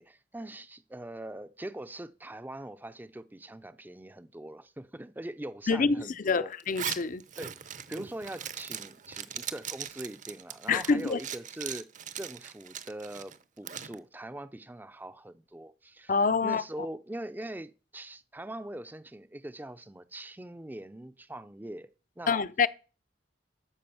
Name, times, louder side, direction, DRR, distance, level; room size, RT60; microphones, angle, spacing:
voice 1, 0.0-6.5 7.4-7.5 7.9-11.9 12.2-21.9 22.2-22.4, right 1 dB, 10° right, 0.5 m, -42 dB
voice 2, 6.2-7.2 10.7-11.2 16.1-16.6 22.3-22.7, left 4 dB, 45° left, 0.6 m, -26 dB
Zipper (clothing), 6.6-14.0, right 9 dB, 45° right, 0.7 m, -40 dB
13.0 x 5.0 x 7.0 m
head